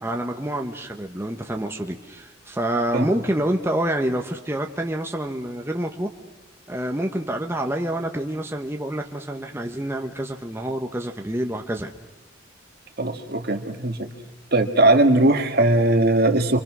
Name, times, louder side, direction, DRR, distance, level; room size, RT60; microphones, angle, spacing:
voice 1, 0.0-6.1 6.7-11.9, right 1 dB, 10° right, 3 dB, 1.0 m, -27 dB
voice 2, 13.0-14.1 14.5-16.6, right 2 dB, 50° right, 6 dB, 1.9 m, -19 dB
28.0 x 25.0 x 6.1 m, 1.1 s
head